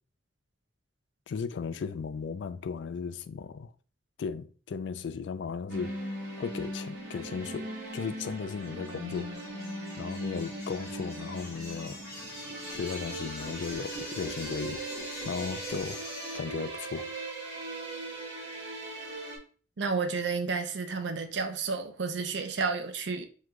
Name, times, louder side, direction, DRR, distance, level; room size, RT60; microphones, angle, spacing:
voice 1, 1.3-3.7 4.2-5.9 6.4-9.3 10.0-12.0 12.7-14.8 15.2-17.1, left 5 dB, 70° left, 0.3 m, -36 dB
sound 1, 5.7-19.4, right 1 dB, 85° right, 1.5 m, -39 dB
sound 2, 8.4-16.4, left 1 dB, 15° left, 1.4 m, -43 dB
voice 2, 19.8-23.3, right 4 dB, 70° right, 0.6 m, -31 dB
4.6 x 3.7 x 2.2 m
head